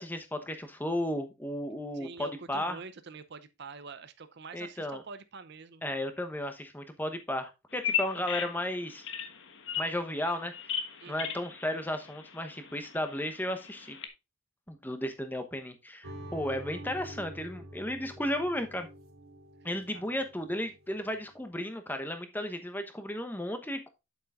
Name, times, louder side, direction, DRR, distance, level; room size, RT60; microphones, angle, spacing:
voice 1, 0.0-2.8 4.5-5.0 5.8-9.0 9.8-10.8 11.1-14.0 14.7-18.9 19.6-23.9, left 1 dB, 10° left, 1.0 m, -34 dB
voice 2, 1.9-5.8 11.0-11.3 19.9-20.0, right 4 dB, 55° right, 0.6 m, -46 dB
Bird vocalization bird call bird song, 7.7-14.1, left 8 dB, 60° left, 1.3 m, -37 dB
sound 1, 16.0-21.2, equal, 85° right, 2.4 m, -47 dB
8.3 x 7.8 x 2.5 m
head